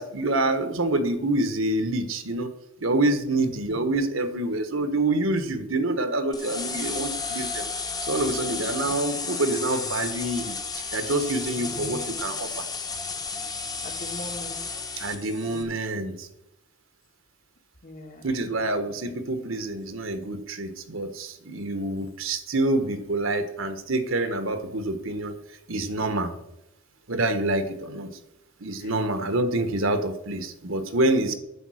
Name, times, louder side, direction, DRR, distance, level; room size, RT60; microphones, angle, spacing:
voice 1, 0.0-2.5 2.8-7.7 8.0-10.6 10.9-12.7 15.0-16.3 18.2-25.3 25.7-26.3 27.1-28.1 28.6-31.4, right 2 dB, 70° right, 9 dB, 1.2 m, -26 dB
sound 1, 6.3-15.6, left 4 dB, 20° left, 1.0 m, -33 dB
voice 2, 13.8-14.6 15.5-15.6 17.8-18.2, left 1 dB, 40° left, 5 dB, 1.3 m, -41 dB
10.0 x 7.2 x 6.4 m, 0.89 s
head